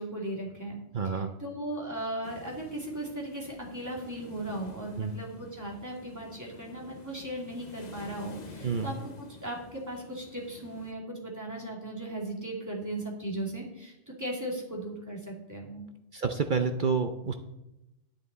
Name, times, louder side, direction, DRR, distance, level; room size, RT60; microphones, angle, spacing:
voice 1, 0.0-0.8 1.0-15.8, right 1 dB, 15° right, -2 dB, 2.7 m, -37 dB
voice 2, 0.9-1.3 5.0-5.1 8.6-8.9 16.1-17.3, right 5 dB, 50° right, 6 dB, 0.8 m, -28 dB
sound 1, 2.2-10.9, left 3 dB, 40° left, 0.9 m, -49 dB
10.0 x 10.0 x 4.1 m, 0.91 s
omnidirectional pair, 1.2 m